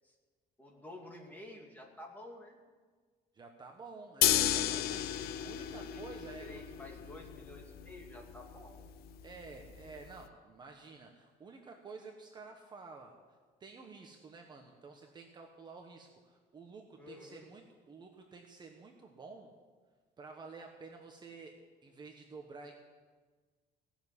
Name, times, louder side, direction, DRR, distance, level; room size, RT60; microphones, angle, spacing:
voice 1, 0.6-2.6 5.8-6.0 6.4-8.8 17.0-17.5, left 1 dB, 10° left, 0 dB, 2.5 m, -51 dB
voice 2, 3.3-6.5 9.2-13.1 13.6-19.5 20.2-22.7, right 4 dB, 25° right, 2 dB, 1.2 m, -51 dB
sound 1, 4.2-10.2, left 12 dB, 65° left, 0.7 m, -34 dB
17.5 x 7.2 x 9.9 m, 1.5 s
cardioid pair, 155°, 17 cm